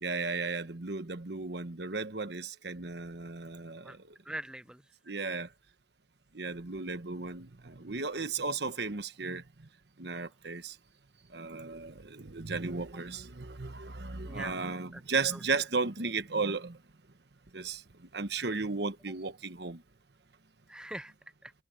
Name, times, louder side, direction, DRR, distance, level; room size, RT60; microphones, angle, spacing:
voice 1, 0.0-4.0 5.1-5.5 6.3-9.7 10.0-10.8 11.3-16.8 17.5-19.8, right 4 dB, 65° right, 1.2 m, -35 dB
voice 2, 4.2-4.8 10.1-10.3 14.2-15.0 15.3-15.4 18.4-18.5 20.7-21.1 21.4-21.5, right 1 dB, 5° right, 0.4 m, -43 dB
head